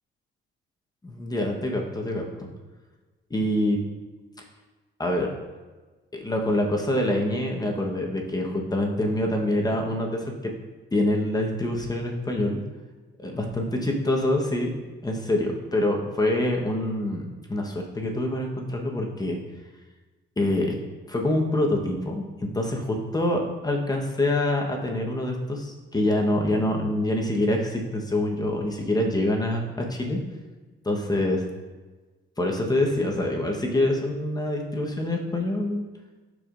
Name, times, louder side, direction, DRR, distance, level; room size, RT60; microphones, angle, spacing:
voice 1, 1.0-2.5 3.3-3.8 5.0-5.3 6.1-10.5 10.9-12.6 13.2-14.7 15.0-19.4 20.4-20.7 21.1-22.3 22.5-30.2 30.8-31.4 32.4-35.8, left 1 dB, 20° left, 1 dB, 1.2 m, -25 dB
11.5 x 4.8 x 2.6 m, 1.3 s
cardioid pair, 90°, 20 cm